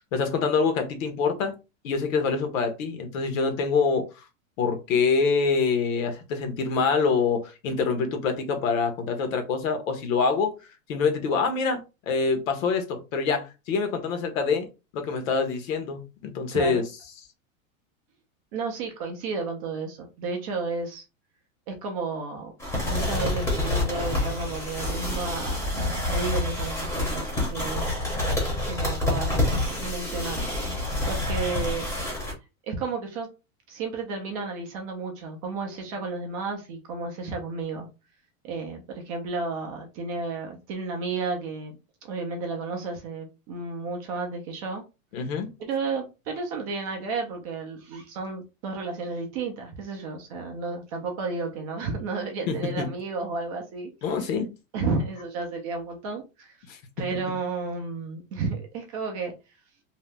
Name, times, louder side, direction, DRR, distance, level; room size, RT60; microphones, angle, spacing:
voice 1, 0.1-1.5 1.8-4.0 4.6-10.6 10.9-11.8 12.1-14.7 14.9-16.8 45.1-45.5 52.5-52.9 54.0-54.6 56.7-57.2, left 5 dB, 70° left, 1.0 m, -25 dB
voice 2, 16.5-16.9 18.5-21.0 21.7-22.5 22.9-27.9 28.6-31.9 32.6-33.3 33.7-37.9 38.4-44.8 45.6-54.3 54.7-56.6 57.0-59.3, right 4 dB, 25° right, 0.4 m, -32 dB
sound 1, 22.6-32.3, left 2 dB, 5° left, 0.7 m, -27 dB
2.8 x 2.1 x 3.3 m
supercardioid pair, 155°, 41 cm